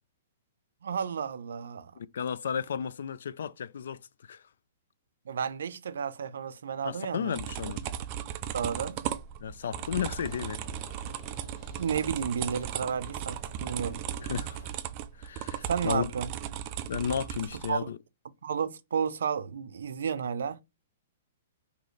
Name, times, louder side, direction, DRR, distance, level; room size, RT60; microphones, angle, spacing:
voice 1, 0.8-1.9 5.3-7.4 7.6-7.7 8.5-9.0 11.8-14.0 15.6-16.3 17.7-17.9 18.4-20.6, right 7 dB, 80° right, 0.5 m, -32 dB
voice 2, 2.0-4.4 6.8-7.8 9.4-10.6 14.2-14.6 15.2-16.1 16.9-18.0, left 8 dB, 70° left, 0.3 m, -33 dB
sound 1, 7.3-17.7, right 10 dB, 25° right, 0.3 m, -37 dB
sound 2, 9.7-14.7, equal, 10° left, 1.1 m, -49 dB
3.1 x 2.8 x 4.0 m
hypercardioid pair, 175°, 0 cm